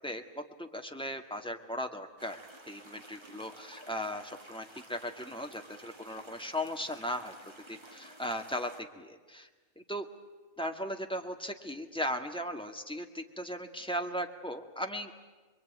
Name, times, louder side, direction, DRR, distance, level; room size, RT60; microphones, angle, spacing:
voice 1, 0.0-2.4 2.7-7.3 7.7-9.5 9.8-10.1 10.6-15.2, equal, 5° left, 3 dB, 1.8 m, -37 dB
sound 1, 2.2-8.8, right 1 dB, 20° right, 1.7 m, -53 dB
26.5 x 22.5 x 9.4 m, 1.3 s
omnidirectional pair, 1.4 m